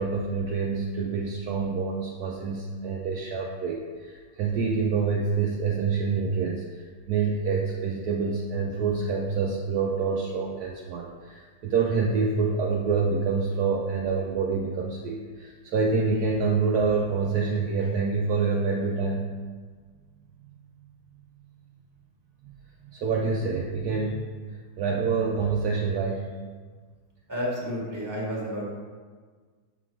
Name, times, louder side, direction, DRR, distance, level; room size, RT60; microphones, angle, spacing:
voice 1, 0.0-19.3 22.9-26.3, right 4 dB, 70° right, -1 dB, 1.1 m, -27 dB
voice 2, 27.3-28.6, equal, 10° right, -4 dB, 1.4 m, -31 dB
6.8 x 3.9 x 4.7 m, 1.5 s
omnidirectional pair, 1.9 m